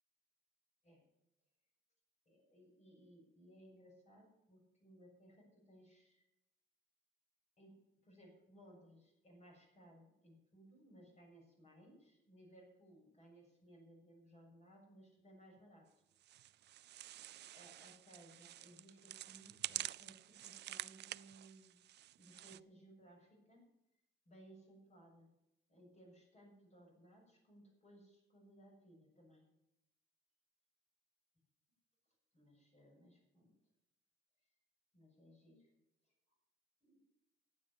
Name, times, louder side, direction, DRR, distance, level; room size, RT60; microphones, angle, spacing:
voice 1, 2.3-6.3 7.6-7.7 8.0-15.9 17.5-21.8 22.2-23.7 24.3-25.3 25.7-29.5 32.3-33.5 34.9-35.7 36.8-37.0, right 1 dB, 35° left, 0 dB, 7.1 m, -62 dB
sound 1, 16.2-22.6, right 13 dB, 60° right, 0.4 m, -48 dB
12.0 x 9.1 x 8.6 m, 0.87 s
cardioid pair, 90°, 20 cm